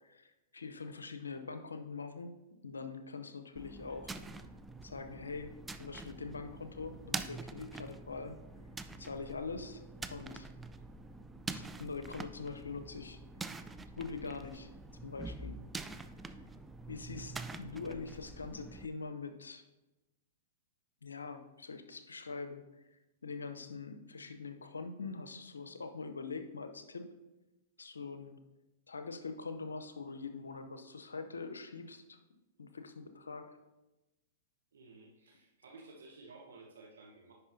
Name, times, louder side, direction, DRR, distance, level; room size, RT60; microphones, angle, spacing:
voice 1, 0.0-2.4 2.6-4.1 4.8-5.5 5.8-8.4 9.0-9.8 10.1-10.5 11.5-13.2 14.0-14.7 15.0-15.6 16.9-19.6 21.0-22.6 22.9-27.1 27.8-28.4 28.9-32.2 32.6-33.6, left 4 dB, 90° left, 8 dB, 0.6 m, -43 dB
sound 1, 3.6-18.9, right 3 dB, 10° right, 0.3 m, -46 dB
voice 2, 34.7-37.3, right 3 dB, 80° right, 0 dB, 1.0 m, -54 dB
9.7 x 5.5 x 2.7 m, 1.0 s
hypercardioid pair, 115°, 0 cm